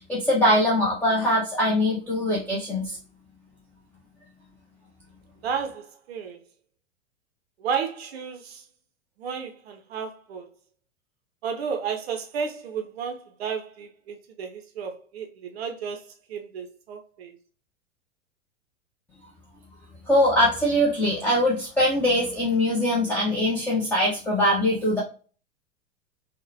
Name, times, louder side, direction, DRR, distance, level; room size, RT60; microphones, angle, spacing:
voice 1, 0.0-3.0 20.1-25.0, left 1 dB, 5° left, 0.5 m, -22 dB
voice 2, 5.4-6.4 7.6-8.6 9.2-10.5 11.4-17.4, right 6 dB, 55° right, 0.5 m, -32 dB
3.6 x 2.1 x 2.6 m
figure-of-eight pair, 90°, 37 cm